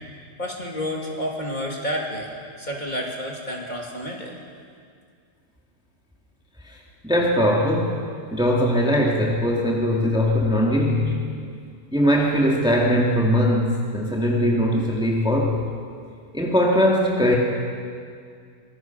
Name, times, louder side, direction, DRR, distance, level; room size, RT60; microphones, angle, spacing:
voice 1, 0.4-2.3 2.6-4.3, equal, 30° left, -1 dB, 3.0 m, -30 dB
voice 2, 7.0-11.3 11.9-15.7 16.3-17.4, equal, 5° right, -2 dB, 2.2 m, -20 dB
25.0 x 20.5 x 6.0 m, 2.2 s
omnidirectional pair, 1.6 m